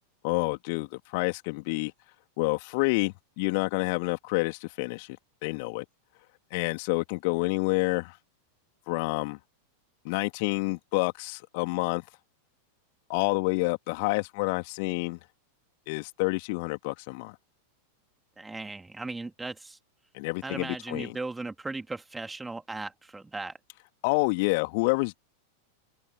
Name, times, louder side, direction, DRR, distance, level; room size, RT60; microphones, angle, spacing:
voice 1, 0.2-1.9 2.4-5.2 5.4-5.8 6.5-8.2 8.9-9.4 10.0-12.0 13.1-15.2 15.9-17.3 20.1-21.2 24.0-25.2, left 28 dB, 45° left, 2.8 m, -28 dB
voice 2, 18.4-19.8 20.4-23.6, right 3 dB, 10° right, 3.5 m, -37 dB
figure-of-eight pair, 90°, 0 cm